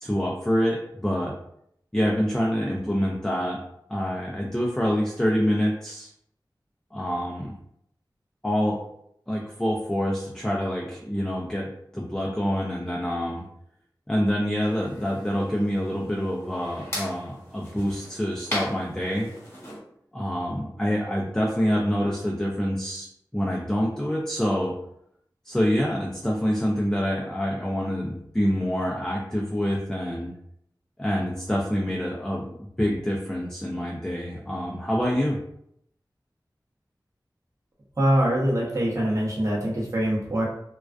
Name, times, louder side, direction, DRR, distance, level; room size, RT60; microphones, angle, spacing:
voice 1, 0.0-1.3 1.9-3.6 3.9-6.1 6.9-7.5 8.4-8.8 9.3-13.5 14.1-19.3 20.1-23.1 23.3-24.7 25.4-30.3 31.0-35.4, equal, 10° left, -2 dB, 0.4 m, -26 dB
sound 1, 14.6-19.8, left 1 dB, 35° left, 1.1 m, -38 dB
voice 2, 38.0-40.5, equal, 40° right, -5 dB, 0.8 m, -23 dB
2.3 x 2.2 x 2.3 m, 0.73 s
wide cardioid pair, 45°, 8 cm